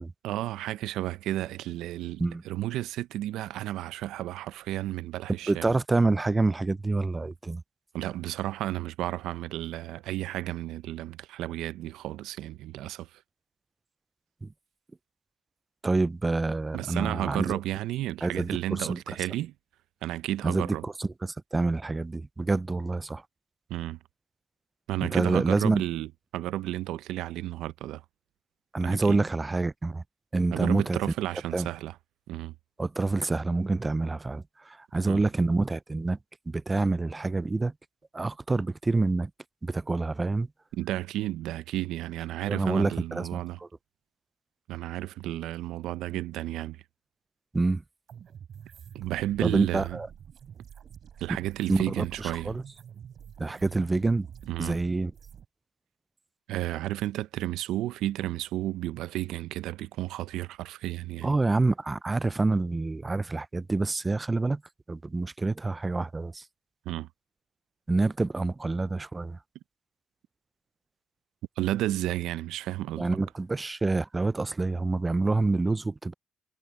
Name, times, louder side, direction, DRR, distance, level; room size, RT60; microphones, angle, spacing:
voice 1, 0.2-5.8 7.9-13.1 16.7-19.5 20.0-20.8 23.7-24.0 24.9-28.0 28.8-29.2 30.5-32.0 32.3-32.5 35.1-35.3 40.7-43.6 44.7-46.8 48.9-50.0 51.2-52.6 54.5-54.8 56.5-61.3 66.9-67.1 71.6-73.1, right 14 dB, 90° right, 0.5 m, -32 dB
voice 2, 5.5-7.6 14.4-14.5 15.8-17.6 18.2-19.0 20.4-23.2 25.0-25.8 28.7-30.0 30.3-31.0 31.5-31.7 32.8-36.2 36.5-37.7 38.1-39.3 39.6-40.5 42.5-43.7 47.5-47.8 49.4-50.1 51.7-52.6 53.4-54.3 54.6-55.1 61.2-64.6 64.9-66.4 67.9-69.4 73.0-76.1, right 3 dB, 20° right, 0.3 m, -27 dB
sound 1, 48.1-55.5, right 8 dB, 60° right, 5.0 m, -47 dB
cardioid pair, 90°, 0 cm